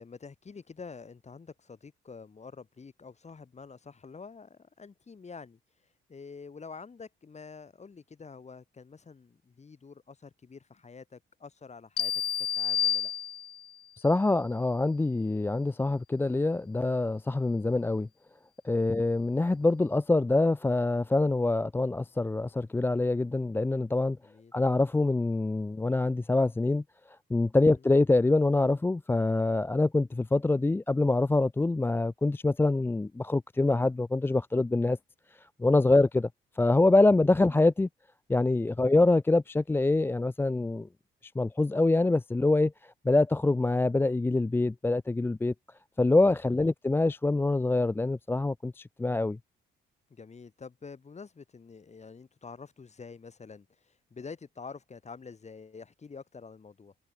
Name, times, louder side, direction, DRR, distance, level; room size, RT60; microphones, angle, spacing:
voice 1, 0.0-5.6 6.1-13.1 18.9-19.1 24.2-24.5 27.8-27.9 35.8-36.0 38.8-39.0 46.6-46.7 50.1-56.9, left 5 dB, 35° left, 8.0 m, -47 dB
sound 1, 12.0-13.8, left 9 dB, 55° left, 1.2 m, -29 dB
voice 2, 14.0-18.1 18.6-24.2 24.5-26.8 27.3-35.0 35.6-36.3 36.6-37.9 38.3-40.9 41.4-42.7 43.0-45.5 46.0-49.4, left 2 dB, 10° left, 0.4 m, -25 dB
cardioid pair, 90°, 20 cm